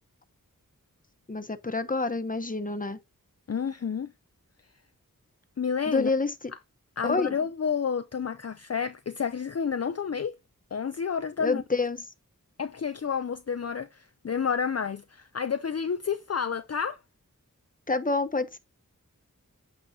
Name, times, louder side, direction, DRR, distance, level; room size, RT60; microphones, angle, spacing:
voice 1, 1.3-3.0 5.9-6.3 7.0-7.3 11.4-12.0 17.9-18.6, left 3 dB, 25° left, 0.9 m, -27 dB
voice 2, 3.5-4.1 5.6-6.1 7.0-10.3 10.7-11.6 12.6-17.0, left 6 dB, 50° left, 0.5 m, -30 dB
8.7 x 6.2 x 2.7 m
wide cardioid pair, 50°, 33 cm